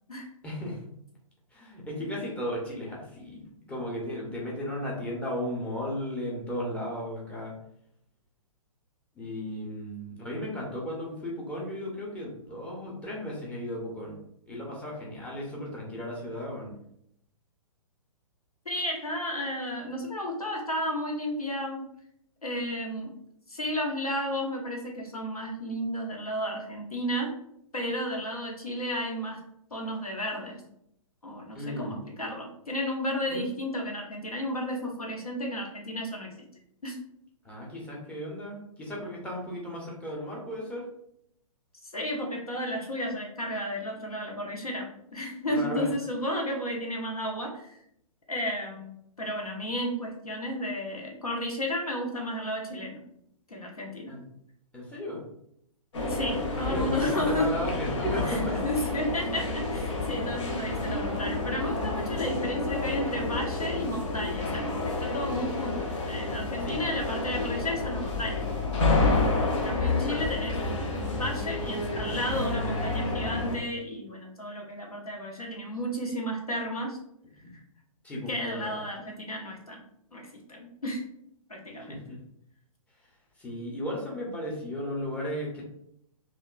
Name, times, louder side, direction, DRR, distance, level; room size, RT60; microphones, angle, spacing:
voice 1, 0.4-0.8 1.5-3.4 3.7-7.6 9.1-14.1 14.5-16.7 31.5-32.0 33.3-33.5 37.4-40.9 45.5-45.9 54.1-54.2 54.7-55.2 56.6-58.6 66.6-66.9 70.0-70.3 77.4-77.6 78.0-78.8 81.7-82.2 83.4-85.6, left 1 dB, 5° left, -4 dB, 0.6 m, -35 dB
voice 2, 18.7-21.9 22.4-23.1 23.5-27.3 27.7-29.4 29.7-30.6 31.2-36.3 36.8-37.0 41.8-47.8 48.3-53.0 53.5-54.1 56.1-57.5 58.3-68.5 69.5-70.5 71.2-77.0 78.3-79.8 80.1-80.2 80.5-81.0 81.5-82.0, equal, 85° left, 0 dB, 0.8 m, -33 dB
sound 1, 55.9-73.6, left 2 dB, 55° left, 0.8 m, -29 dB
2.8 x 2.3 x 2.3 m, 0.74 s
figure-of-eight pair, 120°, 18 cm